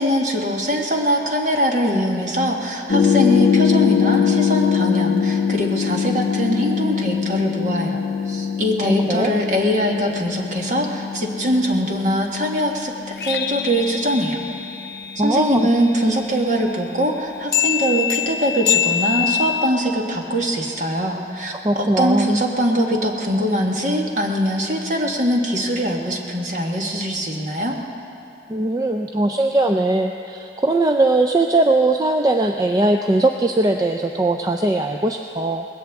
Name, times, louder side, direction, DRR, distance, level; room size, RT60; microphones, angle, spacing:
voice 1, 0.0-8.0 8.3-14.4 15.2-21.5 21.8-27.8, equal, 45° right, 0 dB, 1.5 m, -22 dB
sound 1, 2.9-15.9 17.5-19.7, left 7 dB, 65° left, 0.6 m, -22 dB
voice 2, 8.8-9.3 15.2-15.7 21.6-22.3 28.5-35.7, right 2 dB, 20° right, 5 dB, 0.4 m, -20 dB
20.0 x 16.5 x 3.5 m, 2.7 s
head